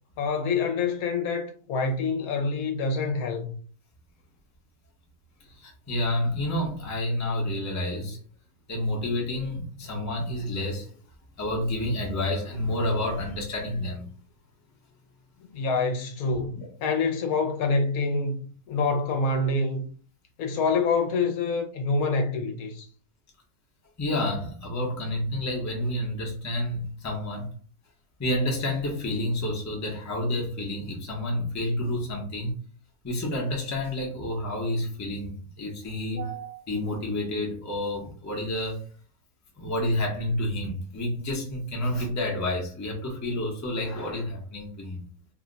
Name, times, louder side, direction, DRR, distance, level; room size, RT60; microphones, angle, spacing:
voice 1, 0.2-3.5 15.5-18.4 18.7-19.8 20.4-22.9, left 3 dB, 70° left, 1.0 m, -26 dB
voice 2, 5.4-8.2 8.7-10.9 11.4-14.0 16.3-16.7 24.0-27.5 28.2-32.5 33.0-38.8 39.6-45.0, left 1 dB, 20° left, 0.5 m, -29 dB
2.7 x 2.2 x 3.8 m
omnidirectional pair, 1.6 m